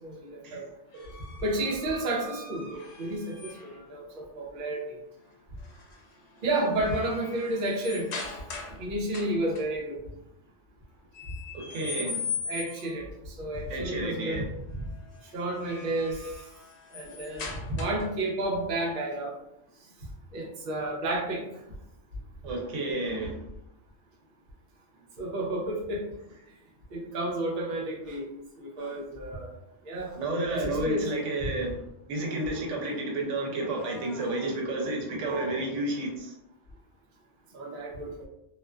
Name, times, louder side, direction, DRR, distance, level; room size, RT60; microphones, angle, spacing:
voice 1, 0.0-0.6 1.4-5.0 6.4-8.1 8.8-10.0 12.5-14.4 14.7-14.9 15.2-16.2 16.9-19.3 20.3-21.4 25.2-26.0 26.9-28.3 28.6-29.5 29.8-30.1 30.5-31.1 35.2-35.6 37.5-38.3, right 1 dB, 55° right, -1 dB, 0.7 m, -31 dB
sound 1, 1.0-3.9 5.6-6.0 6.4-8.8 9.1-9.6 11.1-13.0 15.3-18.2, left 4 dB, 70° left, 0.8 m, -40 dB
voice 2, 11.5-12.3 13.7-14.5 22.4-23.5 30.2-31.8 32.1-36.3, right 2 dB, 85° right, 0 dB, 0.9 m, -31 dB
sound 2, 28.0-28.2 28.8-29.0 29.9-30.4 31.0-31.5 32.1-33.0 33.5-34.6 35.2-35.5, equal, 40° left, 0.8 m, -51 dB
2.4 x 2.3 x 2.2 m, 0.81 s
omnidirectional pair, 1.2 m